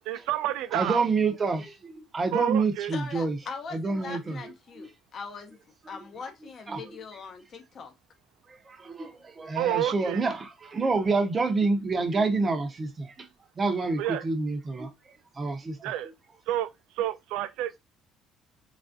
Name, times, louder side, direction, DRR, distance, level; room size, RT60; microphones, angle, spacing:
voice 1, 0.1-1.0 2.3-2.9 9.5-10.2 14.0-14.2 15.8-16.1 16.5-16.7 17.0-17.8, right 12 dB, 85° right, 0.3 m, -29 dB
voice 2, 0.7-3.4 3.7-4.4 4.8-4.9 6.7-6.9 8.5-13.3 13.6-14.9 15.4-15.9, right 3 dB, 25° right, 0.5 m, -28 dB
voice 3, 2.9-5.6 5.9-7.9, left 5 dB, 40° left, 0.7 m, -41 dB
3.2 x 2.4 x 2.5 m
cardioid pair, 135°, 0 cm